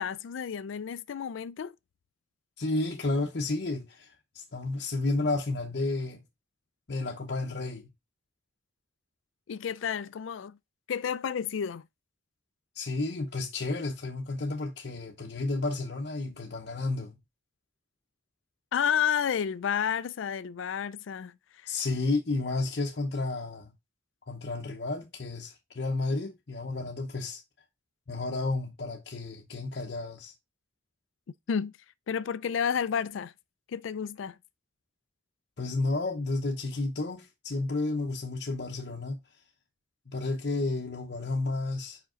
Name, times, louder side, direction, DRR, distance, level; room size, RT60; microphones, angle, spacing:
voice 1, 0.0-1.8 9.5-10.6 10.9-11.9 18.7-21.4 21.6-21.7 31.5-31.7 32.1-33.3 33.7-34.4, left 7 dB, 80° left, 0.4 m, -31 dB
voice 2, 2.6-6.2 6.9-7.9 12.7-17.2 21.7-23.7 24.3-27.4 28.1-30.3 35.6-39.2 40.1-42.0, left 2 dB, 55° left, 0.8 m, -31 dB
5.2 x 5.1 x 3.7 m
head